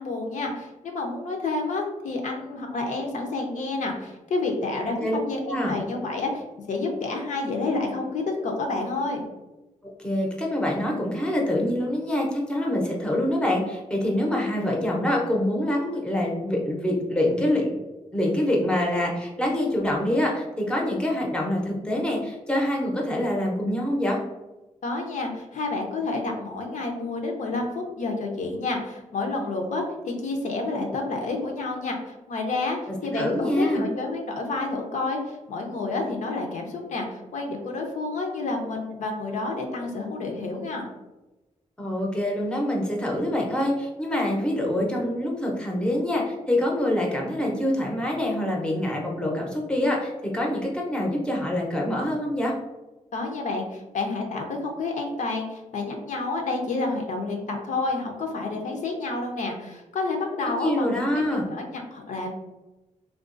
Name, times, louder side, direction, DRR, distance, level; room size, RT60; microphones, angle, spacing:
voice 1, 0.0-9.3 24.8-32.8 33.0-40.9 53.1-62.3, left 3 dB, 80° left, 2 dB, 0.6 m, -29 dB
voice 2, 9.8-17.8 18.1-24.2 32.9-33.8 41.8-52.5 60.5-61.5, left 1 dB, 5° left, -1 dB, 0.6 m, -25 dB
3.6 x 2.3 x 2.5 m, 1.0 s
wide cardioid pair, 130°, 13 cm